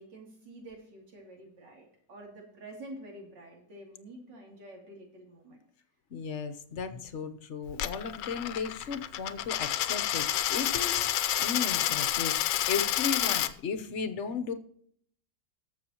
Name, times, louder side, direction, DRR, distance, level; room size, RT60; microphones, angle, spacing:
voice 1, 0.0-5.6, right 1 dB, 75° right, -1 dB, 3.5 m, -48 dB
voice 2, 6.1-11.1 11.4-14.5, left 6 dB, 50° left, 10 dB, 1.0 m, -35 dB
Coin (dropping), 7.7-13.5, left 12 dB, 80° left, 1.3 m, -29 dB
19.5 x 7.0 x 2.9 m, 0.64 s
omnidirectional pair, 1.9 m